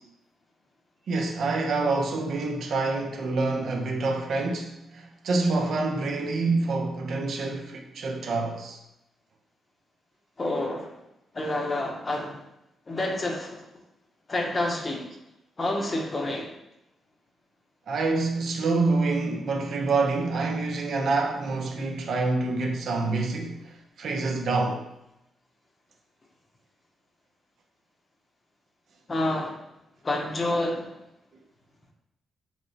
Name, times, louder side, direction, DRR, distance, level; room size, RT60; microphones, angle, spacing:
voice 1, 1.1-8.8 17.9-24.9, right 3 dB, 70° right, 0.5 m, -27 dB
voice 2, 10.4-11.0 11.3-12.4 12.9-13.6 14.3-15.1 15.6-16.5 29.1-29.6 30.0-30.9, left 1 dB, 40° left, 0.7 m, -28 dB
3.1 x 3.0 x 2.7 m
supercardioid pair, 60°, 0 cm